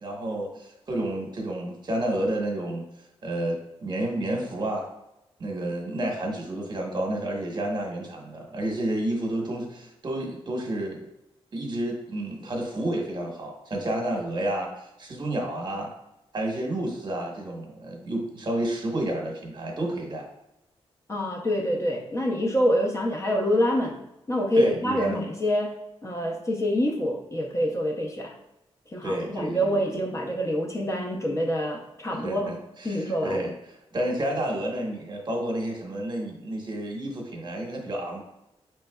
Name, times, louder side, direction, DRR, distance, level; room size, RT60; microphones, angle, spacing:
voice 1, 0.0-2.8 3.2-4.9 5.4-11.1 11.5-15.9 16.3-20.3 24.6-25.2 29.0-30.0 32.2-32.5 32.8-33.5 33.9-38.2, right 1 dB, 45° right, 1 dB, 0.9 m, -30 dB
voice 2, 21.1-24.0 24.3-25.8 26.0-28.4 28.9-32.5 32.8-33.4, equal, 30° left, 0 dB, 0.6 m, -26 dB
5.2 x 3.2 x 2.2 m, 0.90 s
cardioid pair, 90°, 11 cm